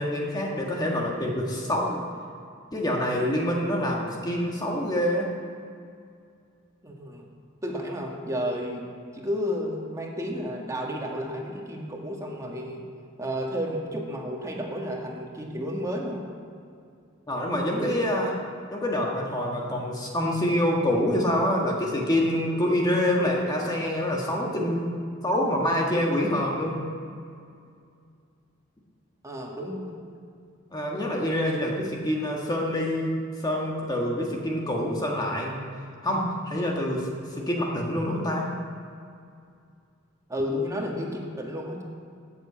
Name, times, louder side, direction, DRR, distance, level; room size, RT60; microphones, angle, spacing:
voice 1, 0.0-2.1 2.7-5.3 17.3-18.4 18.7-24.9 25.2-26.8 30.7-35.6 36.0-37.1 37.4-38.5, left 1 dB, 20° left, -2 dB, 1.6 m, -26 dB
voice 2, 6.8-7.3 7.6-8.8 9.1-12.8 13.2-16.3 29.2-30.0 40.3-41.8, equal, 15° right, -1 dB, 2.0 m, -32 dB
13.0 x 8.3 x 8.6 m, 2.4 s
head